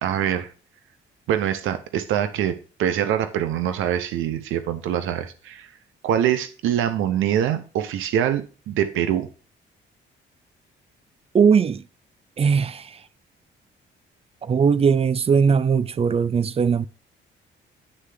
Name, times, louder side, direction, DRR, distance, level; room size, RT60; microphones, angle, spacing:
voice 1, 0.0-0.5 1.3-5.7 6.0-9.3, right 10 dB, 85° right, 0.7 m, -24 dB
voice 2, 11.3-11.8 12.4-13.0 14.4-16.9, right 6 dB, 30° right, 0.4 m, -19 dB
9.8 x 3.4 x 4.8 m
cardioid pair, 90°, 20 cm